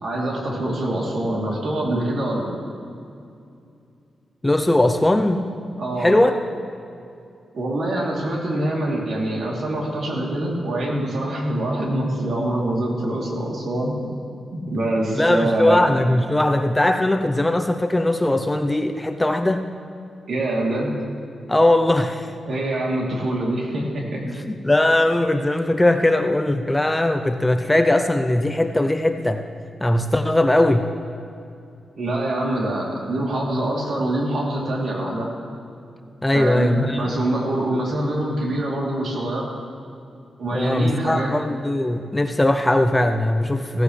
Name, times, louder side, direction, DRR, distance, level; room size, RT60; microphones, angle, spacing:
voice 1, 0.0-2.5 5.8-6.2 7.5-14.1 14.5-15.8 20.3-20.9 22.4-24.2 32.0-35.3 36.3-39.5 40.4-41.4, right 1 dB, 65° right, -3 dB, 3.1 m, -24 dB
voice 2, 4.4-5.4 6.0-6.4 15.2-19.6 21.5-22.3 24.3-29.4 29.8-30.9 36.2-37.2 40.5-43.8, left 1 dB, 10° left, 6 dB, 0.6 m, -19 dB
16.5 x 15.0 x 3.3 m, 2.5 s
wide cardioid pair, 140°, 0 cm